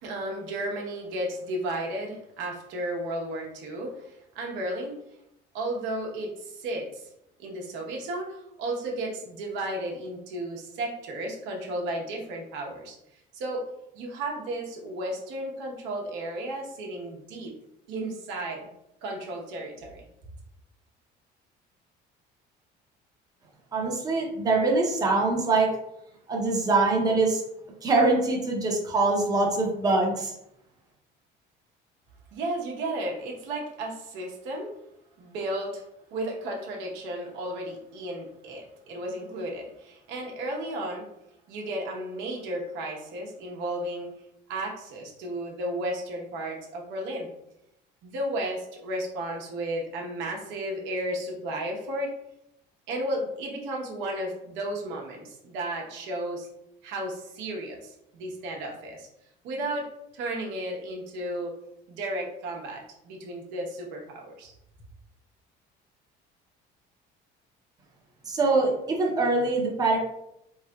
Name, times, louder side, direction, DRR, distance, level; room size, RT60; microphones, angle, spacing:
voice 1, 0.0-5.0 5.5-7.1 7.4-13.7 13.9-17.5 17.9-18.7 19.0-20.0 32.3-34.7 35.2-35.8 36.1-41.1 41.5-44.1 44.5-47.3 48.0-52.1 52.9-56.5 56.8-59.1 59.4-59.9 60.1-61.5 61.9-64.5, right 1 dB, 80° right, -1 dB, 0.9 m, -33 dB
voice 2, 23.7-25.7 26.3-27.4 27.8-30.3 68.2-70.0, right 3 dB, 20° right, 0 dB, 0.6 m, -23 dB
3.8 x 3.2 x 2.3 m, 0.80 s
cardioid pair, 180°, 19 cm